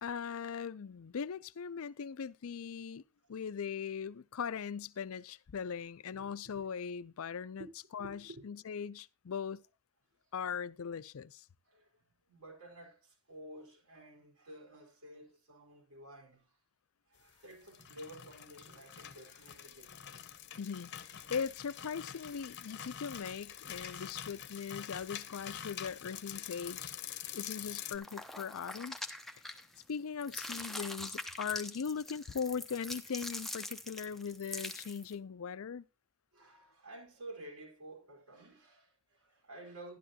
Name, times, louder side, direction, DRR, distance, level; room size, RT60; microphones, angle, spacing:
voice 1, 0.0-3.0 3.3-7.7 7.9-9.6 10.3-11.5 20.6-20.9 21.3-27.0 27.3-29.0 29.5-29.6 29.9-35.8, left 6 dB, 70° left, 0.5 m, -40 dB
voice 2, 8.0-8.4 11.7-16.6 17.1-20.3 22.4-22.5 28.2-28.3 29.7-29.8 36.3-40.0, right 1 dB, 85° right, 4.4 m, -52 dB
sound 1, 17.5-28.0, left 9 dB, 55° left, 0.8 m, -46 dB
sound 2, 28.0-29.9 30.2-35.1, left 1 dB, ahead, 0.7 m, -43 dB
12.5 x 11.5 x 2.8 m
head